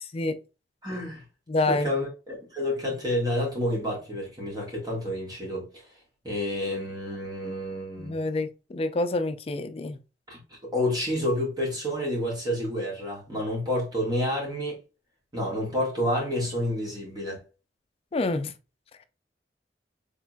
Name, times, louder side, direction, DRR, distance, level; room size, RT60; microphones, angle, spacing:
voice 1, 0.8-1.2 1.7-5.8 6.2-8.2 10.3-14.8 15.3-17.4, left 1 dB, 20° right, 1.6 m, -29 dB
voice 2, 1.5-1.9 8.0-10.0 18.1-18.5, left 2 dB, 35° left, 0.4 m, -27 dB
4.5 x 3.5 x 2.2 m
head